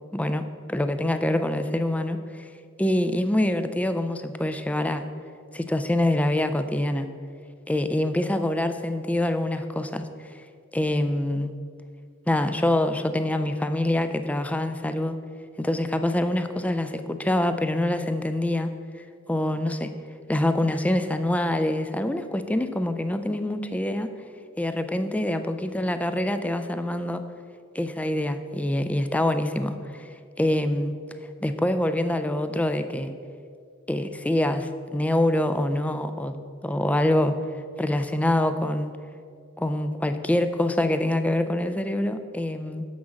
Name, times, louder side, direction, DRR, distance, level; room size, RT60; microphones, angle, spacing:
voice 1, 0.1-2.5 2.8-5.0 5.5-7.1 7.7-10.4 10.7-11.5 12.3-15.2 15.6-18.7 19.3-19.9 20.3-24.1 24.6-27.2 27.7-30.9 31.4-33.1 33.9-36.3 36.6-37.4 37.8-38.9 39.6-42.8, left 1 dB, 5° left, 9 dB, 0.3 m, -25 dB
7.1 x 6.2 x 6.3 m, 2.2 s
head